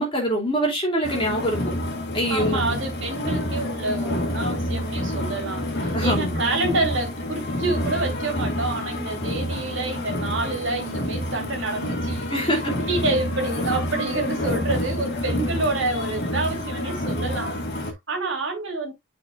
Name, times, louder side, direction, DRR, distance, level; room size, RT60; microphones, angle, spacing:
voice 1, 0.0-1.6 2.1-2.7 5.9-6.4 12.3-12.7, equal, 25° left, 2.7 m, -24 dB
sound 1, 1.0-17.9, left 1 dB, 50° left, 1.8 m, -28 dB
voice 2, 2.3-18.9, right 2 dB, 55° right, 2.8 m, -28 dB
9.8 x 4.4 x 2.5 m
head